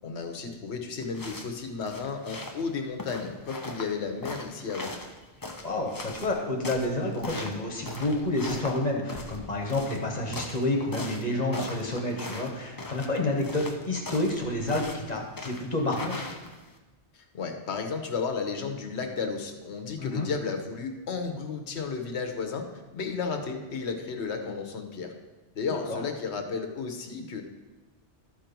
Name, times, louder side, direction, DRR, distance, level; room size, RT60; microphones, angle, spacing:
voice 1, 0.0-4.9 17.1-22.7 22.9-25.1 25.5-27.4, left 5 dB, 75° left, 5 dB, 1.2 m, -33 dB
sound 1, 1.0-16.8, left 2 dB, 20° left, 0.7 m, -40 dB
voice 2, 5.6-16.3 20.0-20.3 25.9-26.0, left 2 dB, 35° left, 1 dB, 1.5 m, -29 dB
12.5 x 4.5 x 5.2 m, 1.1 s
omnidirectional pair, 1.1 m